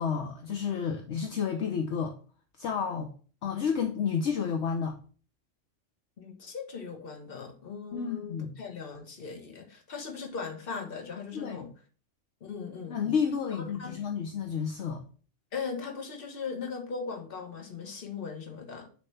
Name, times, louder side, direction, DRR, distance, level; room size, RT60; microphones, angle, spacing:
voice 1, 0.0-2.1 2.6-3.1 3.4-5.0 7.9-8.6 11.3-11.7 12.9-15.0, left 6 dB, 65° left, 1.1 m, -31 dB
voice 2, 6.2-11.7 12.4-13.1 13.8-13.9 15.5-18.9, left 5 dB, 50° left, 1.3 m, -39 dB
6.6 x 3.3 x 5.6 m
omnidirectional pair, 1.3 m